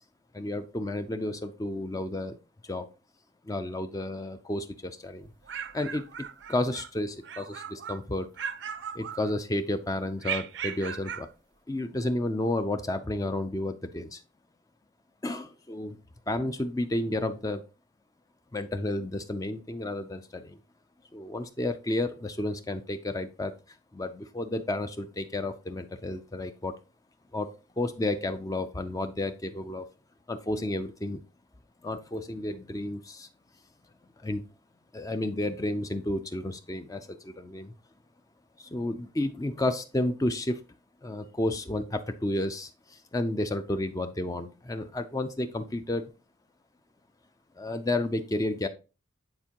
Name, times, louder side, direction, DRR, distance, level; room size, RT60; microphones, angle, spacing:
voice 1, 0.3-2.4 2.6-2.9 3.4-5.3 5.7-8.3 8.9-11.3 11.7-14.2 15.2-16.0 16.3-17.6 18.5-20.6 21.1-26.7 27.3-29.9 30.3-31.2 31.8-33.3 34.2-34.4 34.9-37.7 38.6-40.6 41.0-46.1 47.6-48.7, left 1 dB, 15° left, 9 dB, 0.4 m, -31 dB
sound 1, 5.2-6.9 7.2-8.0 8.4-9.6 10.2-11.3, right 8 dB, 65° right, 0.5 m, -37 dB
9.6 x 4.4 x 2.9 m, 0.31 s
head